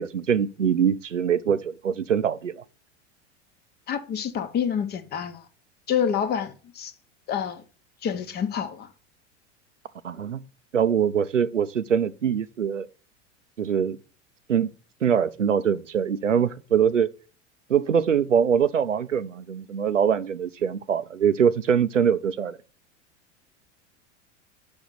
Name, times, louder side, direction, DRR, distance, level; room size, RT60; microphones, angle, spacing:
voice 1, 0.0-2.6 10.0-10.4 10.7-12.9 13.6-14.0 14.5-14.7 15.0-17.1 17.7-22.6, right 8 dB, 90° right, 0.5 m, -23 dB
voice 2, 3.9-5.5 5.9-6.9 7.3-7.6 8.0-8.9, left 8 dB, 25° left, 0.8 m, -27 dB
6.2 x 5.2 x 3.8 m
figure-of-eight pair, 85°, 36 cm